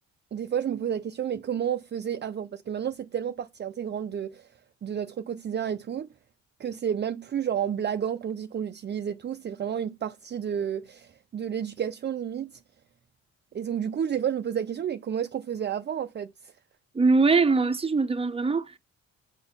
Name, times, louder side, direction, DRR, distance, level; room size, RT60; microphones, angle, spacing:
voice 1, 0.3-4.5 4.8-6.1 6.6-12.6 13.5-16.5, right 8 dB, 35° right, 0.5 m, -31 dB
voice 2, 16.9-18.8, right 4 dB, 20° right, 0.9 m, -22 dB
8.8 x 4.0 x 5.5 m
cardioid pair, 90°, 30 cm